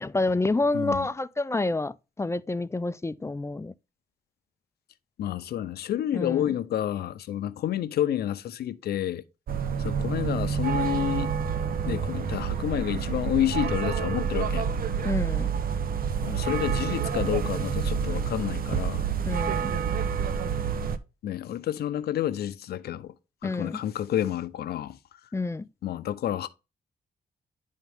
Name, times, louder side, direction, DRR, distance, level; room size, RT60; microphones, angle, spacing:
voice 1, 0.0-3.7 6.1-6.5 15.0-15.5 19.3-19.7 23.4-23.8 25.3-25.7, left 2 dB, 15° left, 0.4 m, -28 dB
voice 2, 0.7-1.1 5.2-9.2 9.8-11.3 11.8-14.7 16.2-19.0 21.2-23.2 23.4-25.0 25.8-26.5, left 11 dB, 80° left, 0.6 m, -29 dB
sound 1, 9.5-21.0, right 7 dB, 65° right, 0.8 m, -28 dB
10.5 x 3.6 x 3.5 m
cardioid pair, 65°, 16 cm